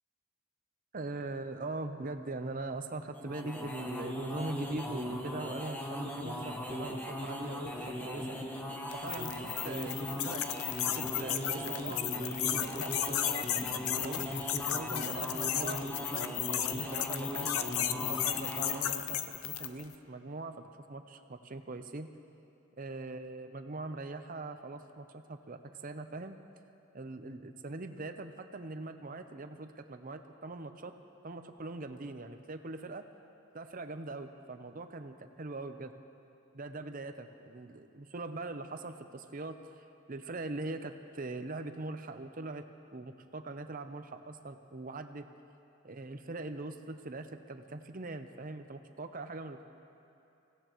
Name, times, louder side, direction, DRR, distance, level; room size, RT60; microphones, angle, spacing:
voice 1, 0.9-8.3 8.9-10.4 11.0-14.3 14.7-15.8 16.1-17.5 17.9-22.1 22.8-26.3 26.9-30.9 31.2-33.0 33.5-35.9 36.5-42.6 42.9-45.2 45.8-49.7, right 2 dB, 40° right, 8 dB, 0.7 m, -42 dB
sound 1, 3.1-19.0, left 1 dB, 10° left, 1.0 m, -39 dB
sound 2, 8.9-19.8, left 11 dB, 80° left, 0.6 m, -34 dB
24.5 x 16.5 x 3.1 m, 2.7 s
head